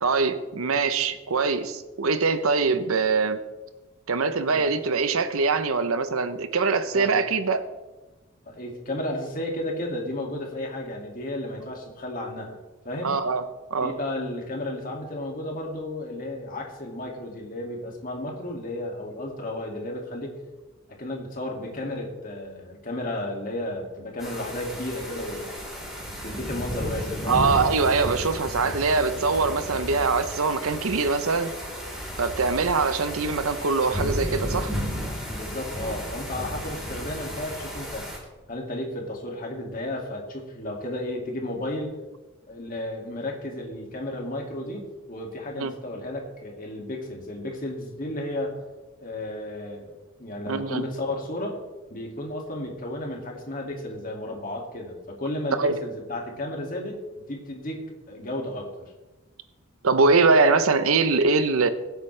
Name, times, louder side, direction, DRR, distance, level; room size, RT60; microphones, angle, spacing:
voice 1, 0.0-3.4 4.1-7.6 13.0-13.4 13.7-13.9 27.3-31.5 32.2-34.7 45.6-45.7 50.5-50.8 55.6-55.8 59.8-61.7, right 4 dB, 90° right, 10 dB, 0.8 m, -23 dB
voice 2, 8.5-12.6 12.8-13.2 13.8-20.3 21.0-25.6 26.2-27.5 35.3-38.1 38.5-41.9 42.5-48.6 49.0-49.9 50.2-51.6 51.9-57.0 57.3-57.8 58.1-58.7, left 1 dB, 40° left, 0 dB, 2.4 m, -33 dB
sound 1, 24.2-38.2, equal, ahead, 3.4 m, -33 dB
21.5 x 8.0 x 3.4 m, 1.2 s
head